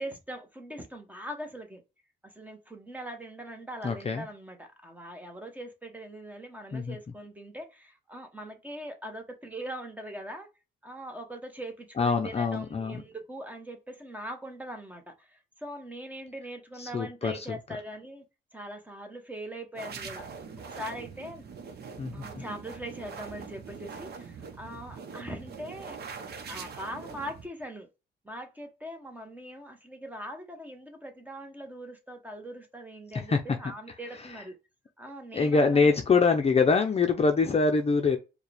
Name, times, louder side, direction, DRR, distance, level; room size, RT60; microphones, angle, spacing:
voice 1, 0.0-1.8 2.2-10.5 10.8-18.2 18.5-20.4 20.7-21.4 22.1-27.9 28.2-34.5 35.0-36.0, right 1 dB, 10° right, 1.0 m, -41 dB
voice 2, 3.8-4.3 6.7-7.0 12.0-13.0 16.8-17.6 22.0-22.4 33.1-33.4 35.3-38.2, left 4 dB, 30° left, 0.6 m, -24 dB
sound 1, 19.8-27.5, right 5 dB, 55° right, 0.8 m, -43 dB
4.6 x 2.3 x 3.3 m
cardioid pair, 90°, 20 cm